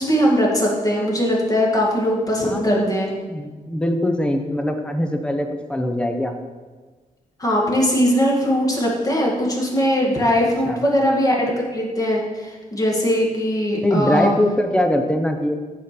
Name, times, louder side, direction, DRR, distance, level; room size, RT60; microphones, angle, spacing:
voice 1, 0.0-3.1 7.4-14.3, equal, 25° left, -2 dB, 2.0 m, -20 dB
voice 2, 2.5-2.9 3.3-6.3 10.4-10.8 13.8-15.5, equal, 5° left, 5 dB, 0.8 m, -22 dB
8.9 x 4.5 x 6.7 m, 1.4 s
wide cardioid pair, 125°, 15 cm